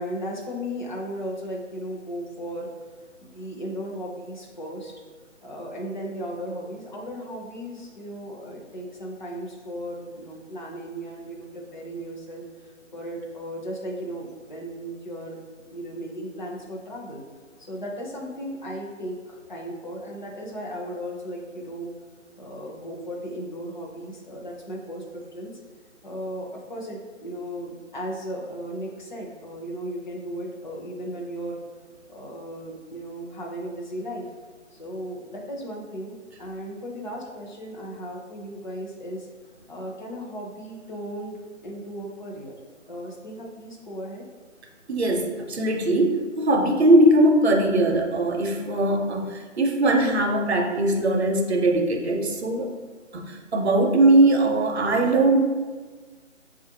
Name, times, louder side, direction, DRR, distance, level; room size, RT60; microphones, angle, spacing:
voice 1, 0.0-2.8 3.2-4.9 5.4-15.4 15.7-17.2 17.6-21.9 22.4-25.5 26.0-31.6 32.1-34.3 34.7-39.3 39.7-42.6 42.9-44.3, equal, 40° left, -2 dB, 0.6 m, -36 dB
voice 2, 44.9-52.7 53.1-55.4, right 1 dB, 55° right, 3 dB, 0.6 m, -20 dB
6.0 x 2.5 x 2.8 m, 1.4 s
figure-of-eight pair, 160°, 38 cm